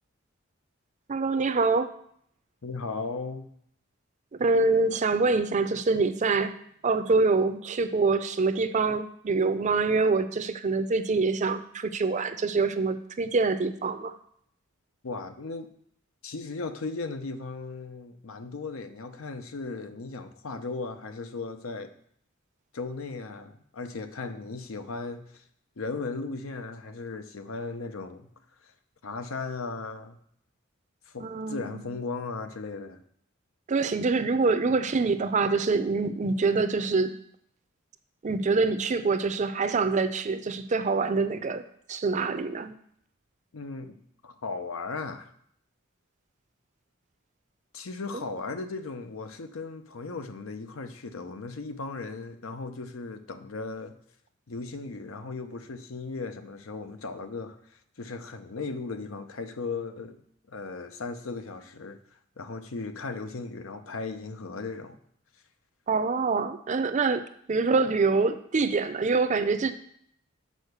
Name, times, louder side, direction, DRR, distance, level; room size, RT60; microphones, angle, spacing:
voice 1, 1.1-1.9 4.4-6.6 6.8-14.2 31.2-31.9 33.7-37.1 38.2-41.6 41.9-42.7 65.9-69.7, right 4 dB, 35° right, 10 dB, 0.5 m, -25 dB
voice 2, 2.6-3.5 15.0-15.7 16.2-21.9 22.7-25.4 25.8-28.3 28.6-28.7 29.0-30.2 31.1-33.0 43.5-44.0 44.2-45.3 47.7-54.0 54.5-57.6 58.0-60.2 60.5-62.0 62.4-65.0, left 3 dB, 85° left, 8 dB, 0.7 m, -36 dB
6.4 x 4.7 x 6.6 m, 0.67 s
head